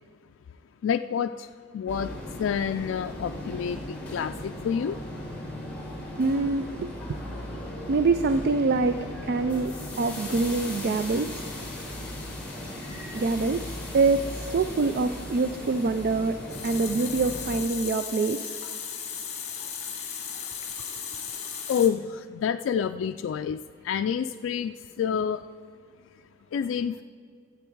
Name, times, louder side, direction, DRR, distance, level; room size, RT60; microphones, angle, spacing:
voice 1, 0.8-1.5 1.7-2.1 2.4-5.0 21.7-23.6 23.8-25.4 26.5-27.0, left 7 dB, 85° left, 8 dB, 0.3 m, -28 dB
sound 1, 1.9-17.6, left 1 dB, 10° left, 1.9 m, -37 dB
voice 2, 6.2-7.2 7.9-11.4 13.1-16.4 16.6-18.6, right 3 dB, 55° right, 10 dB, 0.4 m, -25 dB
Water tap faucet, 16.2-21.9, left 7 dB, 35° left, 1.3 m, -36 dB
14.0 x 8.1 x 4.6 m, 2.1 s
head